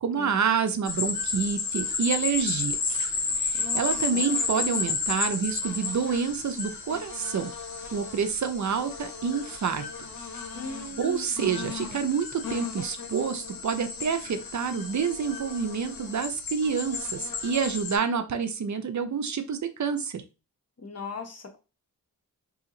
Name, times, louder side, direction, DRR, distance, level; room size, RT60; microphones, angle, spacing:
voice 1, 0.0-3.0 3.4-7.5 7.9-9.9 11.0-20.2, right 6 dB, 55° right, 8 dB, 0.6 m, -28 dB
sound 1, 0.9-18.0, left 4 dB, 70° left, 1.0 m, -32 dB
voice 2, 3.5-4.3 10.5-11.3 20.8-21.6, left 3 dB, 45° left, 4 dB, 1.0 m, -38 dB
2.8 x 2.8 x 3.8 m, 0.30 s
cardioid pair, 80°, 35 cm